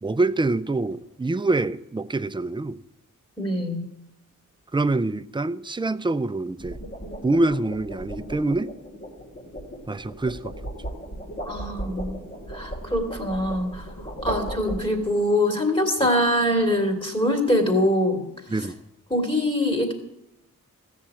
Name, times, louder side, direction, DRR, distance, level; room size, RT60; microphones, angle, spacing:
voice 1, 0.0-2.8 4.7-6.8 7.2-8.7 9.9-10.5 14.3-14.4 18.5-18.8, right 2 dB, 15° right, 0.5 m, -25 dB
sound 1, 0.9-1.2 6.4-15.3, right 1 dB, 35° left, 3.3 m, -36 dB
voice 2, 3.4-3.9 11.4-12.2 12.5-13.8 14.2-18.2 19.1-19.9, left 1 dB, 15° left, 2.9 m, -23 dB
14.0 x 7.0 x 8.6 m
wide cardioid pair, 60°, 33 cm